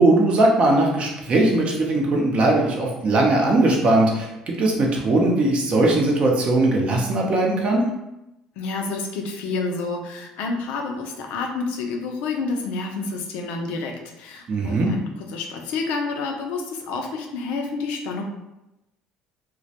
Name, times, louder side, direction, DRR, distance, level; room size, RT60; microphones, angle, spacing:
voice 1, 0.0-4.3 4.6-7.8 14.5-14.9, right 2 dB, 45° right, 0 dB, 0.6 m, -19 dB
voice 2, 8.6-18.2, left 4 dB, 75° left, 2 dB, 0.4 m, -29 dB
2.2 x 2.1 x 2.7 m, 0.92 s
supercardioid pair, 75°, 3 cm